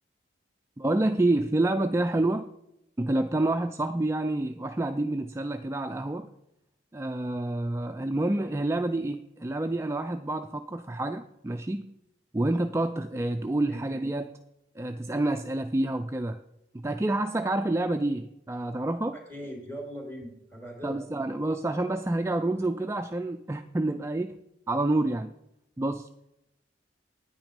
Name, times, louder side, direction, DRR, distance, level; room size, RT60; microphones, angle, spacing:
voice 1, 0.8-2.5 3.0-6.3 6.9-11.9 12.3-14.4 14.8-16.4 16.7-19.2 20.8-24.4 24.7-25.3 25.8-26.1, right 2 dB, 15° right, 7 dB, 0.3 m, -28 dB
voice 2, 19.1-21.0, equal, 10° left, 0 dB, 2.9 m, -40 dB
9.5 x 9.0 x 5.1 m, 0.86 s
head